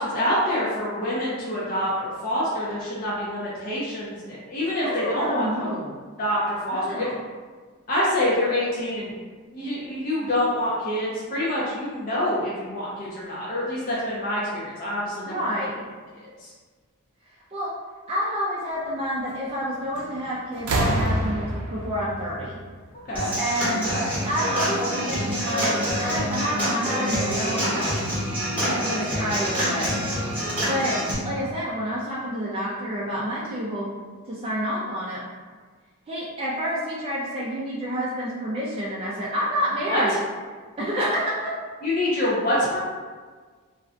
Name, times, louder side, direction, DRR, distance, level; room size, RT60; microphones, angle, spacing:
voice 1, 0.0-5.7 6.2-7.1 7.9-9.1 9.5-15.4 16.1-16.5 22.9-23.3 28.5-29.3 39.9-40.0 41.8-42.8, left 1 dB, 40° left, -7 dB, 0.5 m, -26 dB
voice 2, 4.8-6.0 6.7-7.2 15.3-15.8 17.5-17.7 18.1-22.6 23.4-24.0 24.2-28.0 28.5-30.0 30.6-33.9 34.3-35.2 36.1-40.2 40.8-41.6, equal, 25° right, -6 dB, 0.3 m, -28 dB
sound 1, 19.9-20.2 20.6-23.3 24.4-24.5, right 1 dB, 80° right, 0.5 m, -27 dB
Human voice / Acoustic guitar / Drum, 23.1-31.1, equal, 5° right, 0.9 m, -26 dB
2.4 x 2.2 x 3.7 m, 1.5 s
head